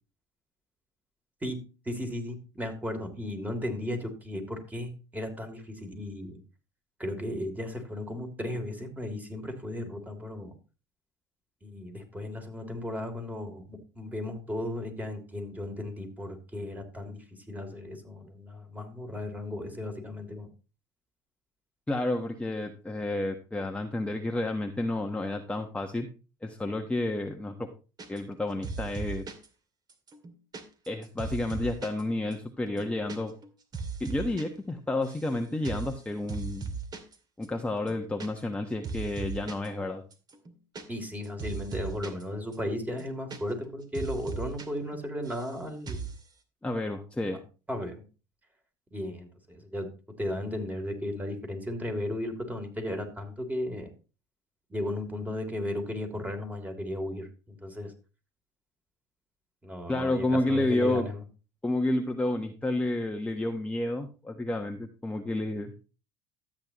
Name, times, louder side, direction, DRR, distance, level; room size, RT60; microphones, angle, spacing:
voice 1, 1.4-6.4 7.0-10.5 11.6-20.5 40.9-46.0 47.7-48.0 48.9-49.9 50.2-53.9 54.7-57.9 59.6-61.2, left 1 dB, 10° right, 4 dB, 3.1 m, -35 dB
voice 2, 21.9-26.1 26.4-27.7 28.1-29.3 30.9-33.3 34.0-36.7 37.4-40.0 46.6-47.4 59.9-61.1 61.6-65.8, left 2 dB, 10° left, 3 dB, 1.2 m, -30 dB
sound 1, 28.0-28.4 28.6-29.5 29.9-32.0 32.3-32.4 32.7-33.2 33.4-34.4 34.7-35.3 35.6-36.0 36.3-37.2 37.4-37.5 37.8-38.6 38.8-39.7 40.1-42.2 42.5-42.6 42.9-43.7 43.9-44.7 44.9-45.5 45.9-46.2, right 5 dB, 30° right, 2.2 m, -38 dB
13.0 x 8.6 x 3.0 m, 0.33 s
supercardioid pair, 90°, 13 cm